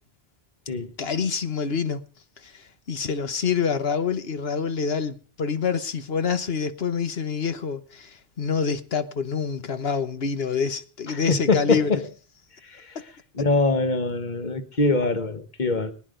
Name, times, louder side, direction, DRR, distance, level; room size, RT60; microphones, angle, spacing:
voice 1, 1.0-2.0 2.4-12.0, left 6 dB, 75° left, 1.5 m, -27 dB
voice 2, 11.3-12.0 12.7-12.8 13.4-15.9, left 3 dB, 45° left, 1.6 m, -23 dB
23.0 x 10.0 x 5.1 m
omnidirectional pair, 1.0 m